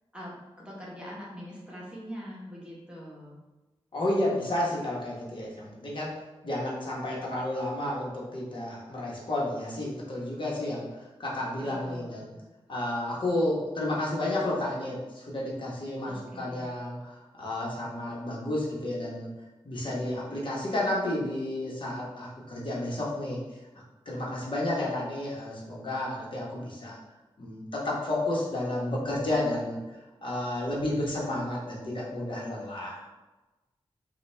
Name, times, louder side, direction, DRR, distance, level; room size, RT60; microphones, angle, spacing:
voice 1, 0.6-3.4 11.6-12.2 16.0-16.7, equal, 10° right, -5 dB, 1.2 m, -43 dB
voice 2, 3.9-6.1 6.4-12.3 12.7-19.3 19.6-23.4 24.0-27.0 27.4-29.8 30.2-33.0, left 1 dB, 55° left, -5 dB, 1.2 m, -31 dB
5.8 x 2.4 x 3.3 m, 1.1 s
wide cardioid pair, 105°, 10 cm